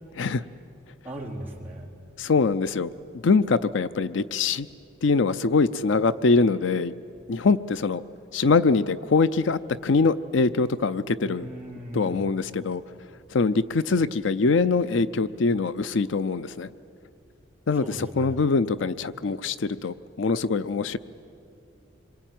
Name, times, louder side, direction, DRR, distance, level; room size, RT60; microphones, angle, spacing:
voice 1, 1.0-1.9 11.2-12.2 17.7-18.4, right 1 dB, 10° right, -5 dB, 3.8 m, -37 dB
voice 2, 2.2-2.9 3.2-4.7 5.0-6.9 7.3-8.0 8.3-11.5 11.9-12.8 13.3-16.7 17.7-21.0, left 4 dB, 70° left, 14 dB, 0.5 m, -23 dB
26.5 x 23.5 x 9.2 m, 2.7 s
head